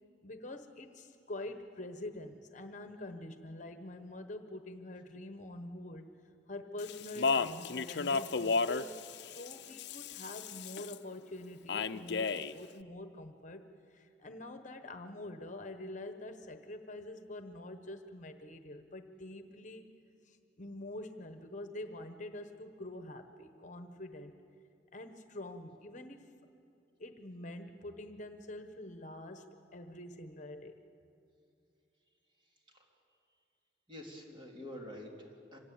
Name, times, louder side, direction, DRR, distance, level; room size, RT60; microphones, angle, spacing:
voice 1, 0.2-6.1 6.5-19.9 20.3-24.3 24.9-26.3 27.0-30.8, left 1 dB, 45° left, 8 dB, 1.2 m, -46 dB
Speech, 6.8-11.0 11.7-12.5, left 4 dB, 70° left, 0.6 m, -33 dB
voice 2, 33.9-35.6, left 1 dB, 30° right, 0 dB, 3.3 m, -47 dB
26.0 x 18.0 x 8.6 m, 2.6 s
head